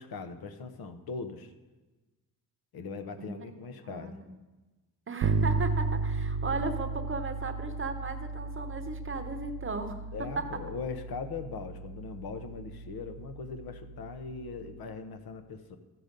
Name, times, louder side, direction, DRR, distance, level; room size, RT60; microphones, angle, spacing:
voice 1, 0.0-1.5 2.7-4.2 10.1-15.8, left 4 dB, 70° left, 8 dB, 1.0 m, -40 dB
voice 2, 3.2-3.5 3.8-4.4 5.1-10.0 10.4-10.5, right 3 dB, 35° right, 7 dB, 0.9 m, -36 dB
Bass guitar, 5.2-14.9, right 4 dB, 85° right, 0.6 m, -34 dB
14.0 x 6.0 x 5.2 m, 1.2 s
cardioid pair, 110°, 38 cm